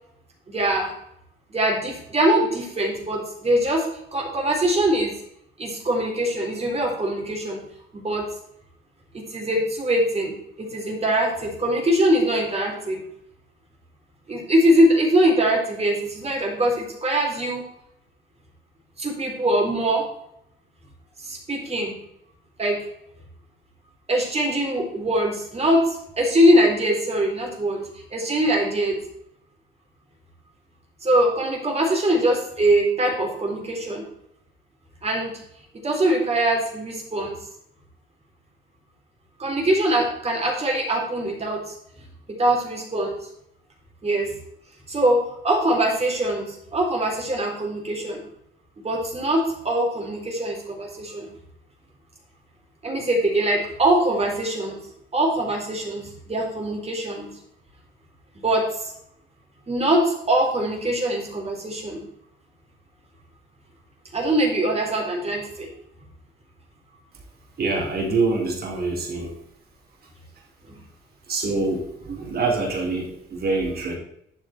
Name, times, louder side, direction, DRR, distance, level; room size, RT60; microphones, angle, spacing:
voice 1, 0.5-0.9 1.5-3.9 4.1-5.1 5.6-7.6 8.0-8.3 9.1-13.0 14.3-17.6 19.0-20.1 21.2-22.0 22.6-22.8 24.1-29.0 31.0-34.0 35.0-35.4 35.8-37.4 39.4-41.7 42.3-43.3 44.0-44.3 44.9-48.2 48.8-51.3 52.8-54.8 55.1-57.3 58.4-58.9 59.7-62.0 64.1-65.7 70.7-70.8, right 1 dB, 30° right, 0 dB, 4.1 m, -22 dB
voice 2, 67.6-69.3 71.3-74.0, right 3 dB, 50° right, -1 dB, 3.6 m, -25 dB
11.0 x 7.6 x 4.5 m, 0.75 s
cardioid pair, 90°, 20 cm